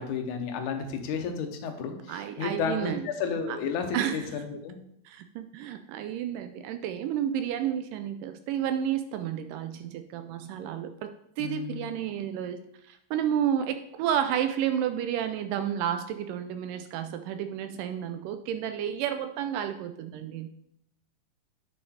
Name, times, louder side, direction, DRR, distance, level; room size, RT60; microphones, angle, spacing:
voice 1, 0.0-4.8 11.4-12.0, left 6 dB, 70° left, 5 dB, 2.1 m, -32 dB
voice 2, 2.1-3.0 3.5-3.6 3.9-4.3 5.1-10.9 11.4-12.6 12.9-20.5, right 9 dB, 80° right, 8 dB, 2.0 m, -31 dB
8.0 x 6.1 x 4.2 m, 0.74 s
omnidirectional pair, 4.1 m